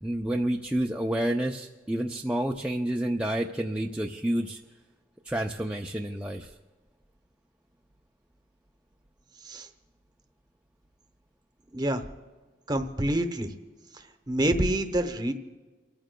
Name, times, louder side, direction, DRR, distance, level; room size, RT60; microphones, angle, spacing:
voice 1, 0.0-4.6 5.2-6.6, right 1 dB, 5° right, 0 dB, 0.4 m, -29 dB
voice 2, 11.7-12.0 12.7-13.5 14.3-15.3, right 1 dB, 25° right, 7 dB, 0.9 m, -27 dB
29.5 x 14.0 x 2.2 m, 1.3 s
head